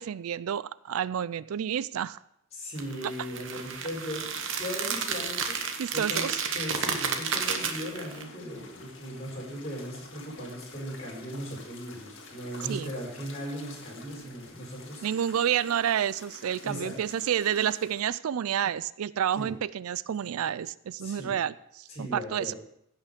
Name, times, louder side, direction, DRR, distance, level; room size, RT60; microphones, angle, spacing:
voice 1, 0.0-2.2 3.0-3.1 5.8-6.4 12.7-12.9 15.0-22.5, right 9 dB, 85° right, 19 dB, 0.4 m, -29 dB
voice 2, 2.5-5.6 5.9-6.3 6.5-15.1 16.6-16.9 19.4-19.5 21.0-21.3 21.9-22.5, equal, 30° left, -3 dB, 4.1 m, -38 dB
sound 1, 2.8-8.2, right 6 dB, 60° right, 1.2 m, -32 dB
sound 2, 7.2-18.0, left 3 dB, 60° left, 1.9 m, -49 dB
15.5 x 5.8 x 5.1 m, 0.75 s
head